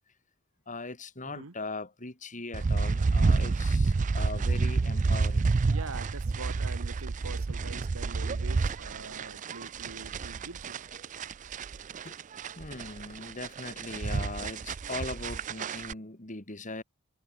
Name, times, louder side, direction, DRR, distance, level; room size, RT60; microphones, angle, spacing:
voice 1, 0.7-5.5 12.0-12.2 12.5-16.8, left 3 dB, 40° left, 3.4 m, -40 dB
sound 1, 2.5-15.9, right 4 dB, 35° right, 0.4 m, -29 dB
voice 2, 5.7-10.9, right 3 dB, 85° right, 1.5 m, -44 dB
head